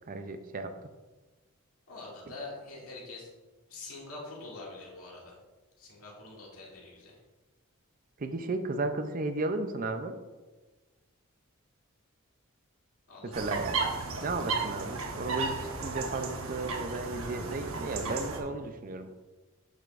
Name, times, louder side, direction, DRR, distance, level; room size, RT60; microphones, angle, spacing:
voice 1, 0.1-0.7 8.2-10.2 13.2-13.8 14.2-19.1, right 3 dB, 40° right, 7 dB, 0.5 m, -34 dB
voice 2, 1.9-3.3 3.7-5.4 5.8-7.2 13.1-13.6, left 2 dB, 85° left, -4 dB, 2.3 m, -45 dB
sound 1, 13.3-18.4, right 4 dB, 70° right, 1.0 m, -34 dB
8.0 x 6.7 x 2.5 m, 1.2 s
head